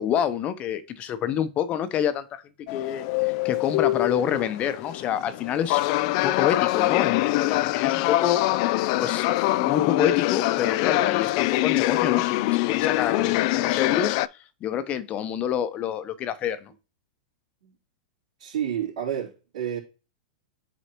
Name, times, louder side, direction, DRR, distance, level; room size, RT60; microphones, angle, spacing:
voice 1, 0.0-2.4 2.7-8.4 9.0-16.7, left 9 dB, 35° left, 0.9 m, -28 dB
sound 1, 2.7-14.3, left 17 dB, 55° left, 0.3 m, -24 dB
voice 2, 18.4-19.8, right 9 dB, 75° right, 3.1 m, -30 dB
7.9 x 4.0 x 3.0 m
hypercardioid pair, 120°, 4 cm